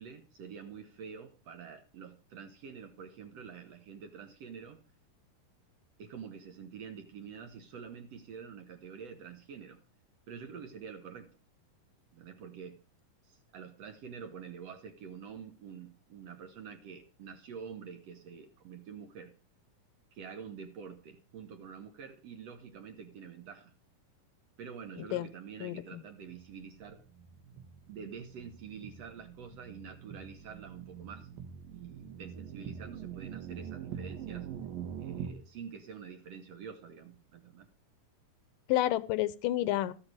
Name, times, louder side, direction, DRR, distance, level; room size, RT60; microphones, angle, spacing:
voice 1, 0.0-4.8 6.0-9.8 10.3-11.4 12.1-12.8 13.2-19.3 20.1-23.7 24.6-27.0 27.9-31.3 31.7-34.5 35.0-37.7, right 6 dB, 60° right, 7 dB, 1.9 m, -47 dB
voice 2, 25.0-25.3 25.6-26.0 38.7-39.9, left 14 dB, 80° left, 16 dB, 2.3 m, -30 dB
sound 1, 26.2-35.3, right 8 dB, 90° right, 3.3 m, -44 dB
13.5 x 8.2 x 5.1 m, 0.34 s
omnidirectional pair, 3.9 m